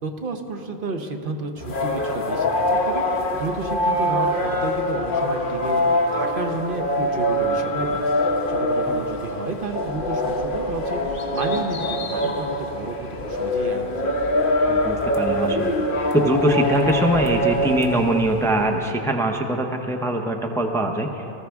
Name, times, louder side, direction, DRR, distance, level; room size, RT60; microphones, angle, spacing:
voice 1, 0.0-5.8 6.1-14.1, right 3 dB, 60° right, 5 dB, 1.0 m, -31 dB
sound 1, 1.6-18.6, left 1 dB, 55° left, 1.1 m, -24 dB
voice 2, 14.7-15.7 16.1-21.2, right 1 dB, 5° left, 4 dB, 0.6 m, -22 dB
19.0 x 14.0 x 3.5 m, 3.0 s
omnidirectional pair, 1.0 m